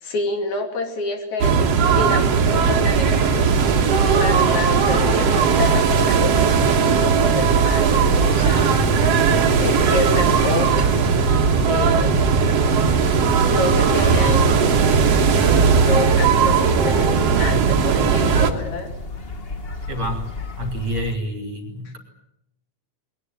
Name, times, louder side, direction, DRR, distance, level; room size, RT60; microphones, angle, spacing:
voice 1, 0.0-3.7 4.1-8.8 9.6-11.1 11.7-12.2 13.5-14.5 15.8-18.9, left 2 dB, 70° left, 5 dB, 4.1 m, -28 dB
sound 1, 1.4-18.5, right 6 dB, 55° right, 2.6 m, -17 dB
sound 2, 2.4-21.1, left 3 dB, 35° left, 0.9 m, -33 dB
voice 2, 19.9-20.3 20.6-22.0, equal, 40° right, 5 dB, 3.8 m, -28 dB
21.5 x 19.0 x 9.3 m, 0.77 s
omnidirectional pair, 3.5 m